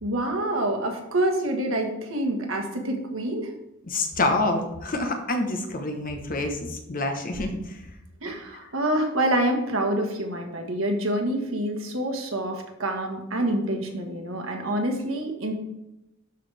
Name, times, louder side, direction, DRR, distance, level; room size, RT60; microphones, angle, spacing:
voice 1, 0.0-3.5 8.2-15.5, right 1 dB, 80° right, 3 dB, 1.4 m, -27 dB
voice 2, 3.9-7.8 8.5-8.6, left 2 dB, 45° left, 5 dB, 1.1 m, -27 dB
12.0 x 4.8 x 3.4 m, 0.91 s
head